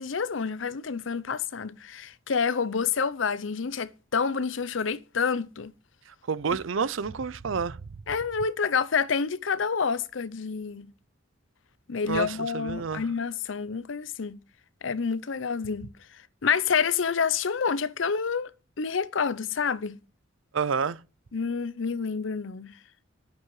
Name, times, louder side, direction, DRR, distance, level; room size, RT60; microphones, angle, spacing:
voice 1, 0.0-5.7 8.1-10.9 11.9-14.4 14.8-15.9 16.4-18.5 18.8-20.0 21.3-22.7, left 6 dB, 75° left, 0.7 m, -28 dB
voice 2, 6.3-7.8 12.1-13.0 20.5-21.0, right 5 dB, 90° right, 0.6 m, -29 dB
11.5 x 9.3 x 4.8 m
head